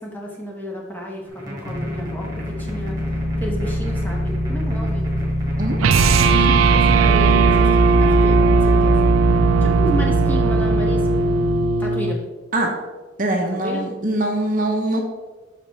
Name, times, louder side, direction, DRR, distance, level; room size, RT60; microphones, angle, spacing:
voice 1, 0.0-3.0 3.4-5.1 6.0-9.1 9.6-11.1 11.8-12.2 13.6-13.9, equal, 10° left, -2 dB, 1.1 m, -31 dB
sound 1, 1.3-7.7, right 1 dB, 20° right, 1.8 m, -37 dB
sound 2, 1.7-11.7, left 1 dB, 65° left, 1.0 m, -25 dB
sound 3, 5.8-12.2, right 4 dB, 85° right, 0.4 m, -17 dB
voice 2, 13.2-15.0, right 1 dB, 40° right, 2 dB, 0.7 m, -22 dB
5.8 x 5.1 x 4.1 m, 1.2 s
head